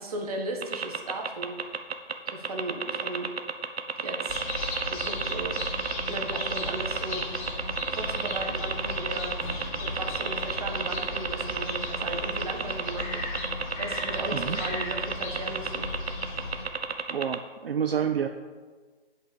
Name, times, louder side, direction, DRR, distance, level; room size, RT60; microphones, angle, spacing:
voice 1, 0.0-1.6 2.3-3.3 4.0-4.4 4.9-5.6 6.1-7.2 8.0-9.3 9.8-13.2 13.5-15.9, right 2 dB, 35° right, 2 dB, 1.5 m, -36 dB
sound 1, 0.6-17.4, right 5 dB, 80° right, 1.0 m, -31 dB
sound 2, 4.3-16.6, left 2 dB, 35° left, 3.0 m, -36 dB
Acoustic guitar / Strum, 9.4-12.6, equal, 5° left, 1.1 m, -51 dB
voice 2, 14.3-14.6 17.1-18.3, right 7 dB, 65° right, 6 dB, 0.7 m, -28 dB
7.2 x 5.7 x 7.1 m, 1.4 s
hypercardioid pair, 165°, 31 cm